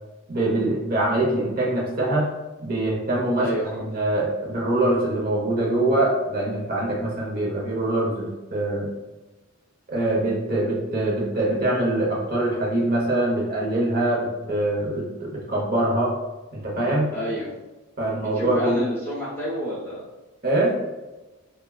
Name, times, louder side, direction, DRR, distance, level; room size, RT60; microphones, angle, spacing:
voice 1, 0.3-2.3 2.6-8.9 9.9-16.1 16.5-17.1 18.0-18.8 20.4-20.7, right 1 dB, 45° right, -3 dB, 0.8 m, -24 dB
voice 2, 3.3-3.8 17.1-17.5 18.3-20.0, equal, 10° left, -9 dB, 0.9 m, -29 dB
3.3 x 2.2 x 2.3 m, 1.1 s
head